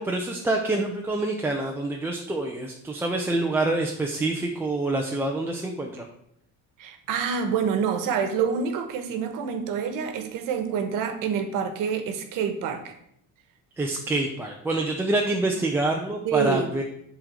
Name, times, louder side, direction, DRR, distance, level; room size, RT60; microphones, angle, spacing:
voice 1, 0.0-6.1 13.8-16.8, right 2 dB, 5° right, 0 dB, 0.4 m, -26 dB
voice 2, 6.8-12.9 16.2-16.7, right 7 dB, 60° right, 8 dB, 1.1 m, -27 dB
7.6 x 3.8 x 6.4 m, 0.74 s
cardioid pair, 175°, 36 cm